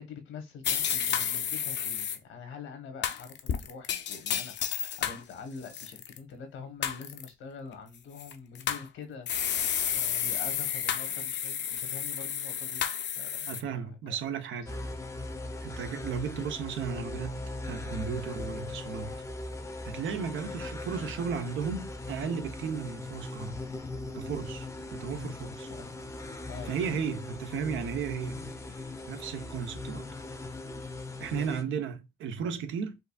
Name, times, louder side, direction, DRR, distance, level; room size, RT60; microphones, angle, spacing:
voice 1, 0.0-9.3 9.9-12.8 13.2-13.5 13.8-14.2 15.4-15.5 25.7-25.9 26.5-26.9 31.2-31.7, left 5 dB, 85° left, 1.1 m, -45 dB
sound 1, 0.6-2.2 3.0-5.2 5.7-6.2 6.8-7.3 8.2-8.9 9.3-13.6, left 9 dB, 65° left, 0.6 m, -31 dB
voice 2, 13.5-14.7 15.6-19.2 19.8-23.6 24.1-25.7 26.7-28.6 29.1-30.1 31.2-33.0, right 6 dB, 75° right, 0.7 m, -35 dB
sound 2, 14.7-31.6, left 2 dB, 15° left, 0.6 m, -39 dB
4.5 x 2.6 x 2.3 m
cardioid pair, 90°, 20 cm